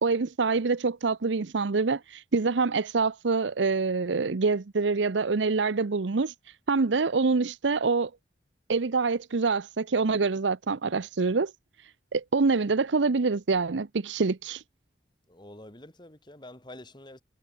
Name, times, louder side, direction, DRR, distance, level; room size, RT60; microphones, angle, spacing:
voice 1, 0.0-6.3 6.7-8.1 8.7-11.5 12.1-14.6, right 4 dB, 90° right, 0.7 m, -26 dB
voice 2, 15.3-17.2, left 1 dB, 25° left, 3.3 m, -47 dB
head